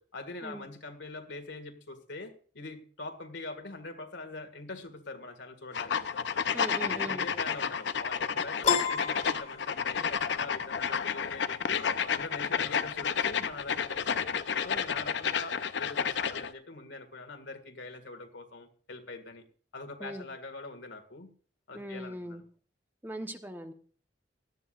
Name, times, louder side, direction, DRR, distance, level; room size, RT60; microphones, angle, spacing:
voice 1, 0.0-6.1 6.8-14.3 14.6-19.4 19.7-21.3 21.7-22.4, left 3 dB, 85° left, 7 dB, 1.9 m, -43 dB
sound 1, 5.7-16.5, left 7 dB, 70° left, 0.6 m, -31 dB
voice 2, 6.5-7.3 20.0-20.3 21.7-22.4 23.0-23.7, right 1 dB, 10° right, 6 dB, 1.0 m, -40 dB
Piano, 8.6-10.2, left 6 dB, 40° left, 1.8 m, -30 dB
17.5 x 12.5 x 2.5 m, 0.42 s
head